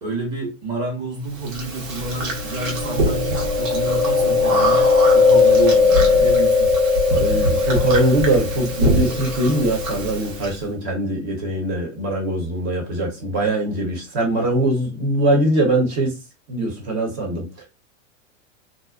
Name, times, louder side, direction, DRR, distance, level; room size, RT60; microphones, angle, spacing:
voice 1, 0.0-6.7, right 3 dB, 10° right, 0.8 m, -29 dB
Chewing mastication, 1.5-10.5, left 3 dB, 80° right, 1.1 m, -18 dB
voice 2, 7.1-16.2 16.5-17.5, right 1 dB, 40° right, 1.0 m, -22 dB
2.5 x 2.2 x 2.2 m
supercardioid pair, 140°, 38 cm